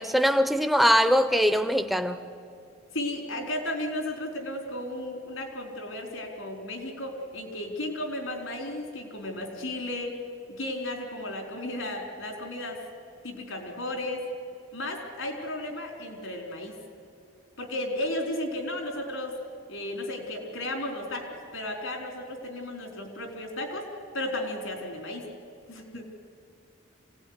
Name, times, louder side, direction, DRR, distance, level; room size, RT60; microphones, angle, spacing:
voice 1, 0.0-2.2 25.9-26.0, equal, ahead, 9 dB, 0.9 m, -22 dB
voice 2, 2.9-10.2 10.5-12.8 13.2-14.2 14.7-16.8 17.6-19.4 19.7-21.3 21.5-23.9 24.1-25.3 25.7-26.0, left 1 dB, 80° left, 3 dB, 4.5 m, -34 dB
26.0 x 17.5 x 9.9 m, 2.4 s
head